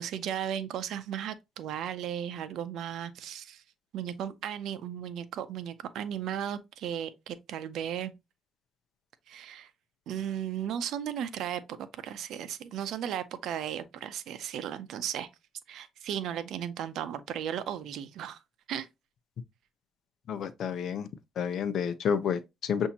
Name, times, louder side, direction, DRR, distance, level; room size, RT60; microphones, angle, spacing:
voice 1, 0.0-3.6 3.9-8.1 9.3-9.7 10.1-15.3 15.7-18.4 18.7-18.9, right 9 dB, 80° right, 0.6 m, -35 dB
voice 2, 20.3-21.1 21.4-22.9, left 7 dB, 65° left, 0.6 m, -30 dB
7.0 x 2.7 x 2.8 m
cardioid pair, 90°, 0 cm